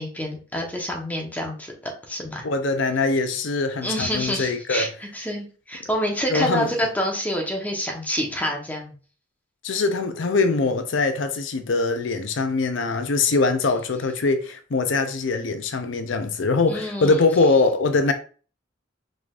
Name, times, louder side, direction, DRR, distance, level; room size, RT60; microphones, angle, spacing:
voice 1, 0.0-1.7 2.1-2.4 3.8-8.9 16.7-17.3, equal, 10° left, 1.0 m, -27 dB
voice 2, 2.4-4.9 6.3-6.7 9.6-18.1, left 3 dB, 70° left, 0.6 m, -22 dB
4.8 x 3.7 x 2.5 m
head